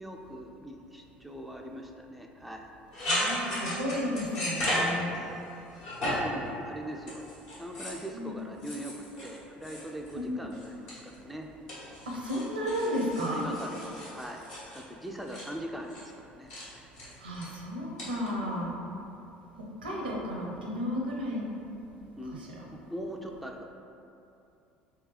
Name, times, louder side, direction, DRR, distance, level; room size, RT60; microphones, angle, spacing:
voice 1, 0.0-2.7 5.1-5.5 6.2-7.2 7.6-11.5 13.3-14.4 14.7-16.9 18.2-18.6 22.1-23.7, right 1 dB, ahead, 1 dB, 0.3 m, -41 dB
sound 1, 2.9-5.4 5.7-6.4 7.0-8.1 8.6-10.2 10.5-11.3 11.7-15.5 15.9-16.1 16.5-16.7 16.9-17.5 18.0-18.3, left 1 dB, 65° left, 1.3 m, -34 dB
voice 2, 3.1-5.1 8.1-8.4 10.1-10.5 12.1-13.5 17.2-18.8 19.8-21.5 22.3-22.6, equal, 85° right, -3 dB, 0.6 m, -33 dB
3.5 x 2.8 x 3.2 m, 2.7 s
figure-of-eight pair, 65°, 5 cm